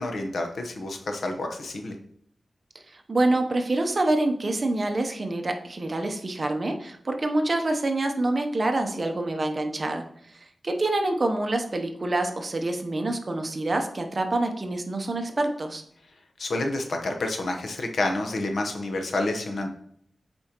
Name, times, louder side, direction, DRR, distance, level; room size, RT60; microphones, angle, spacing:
voice 1, 0.0-1.9 16.4-19.7, left 2 dB, 65° left, 4 dB, 0.9 m, -29 dB
voice 2, 2.9-10.0 10.3-15.8, right 2 dB, 35° right, 5 dB, 0.7 m, -26 dB
8.6 x 4.4 x 2.9 m, 0.68 s
wide cardioid pair, 140°, 0 cm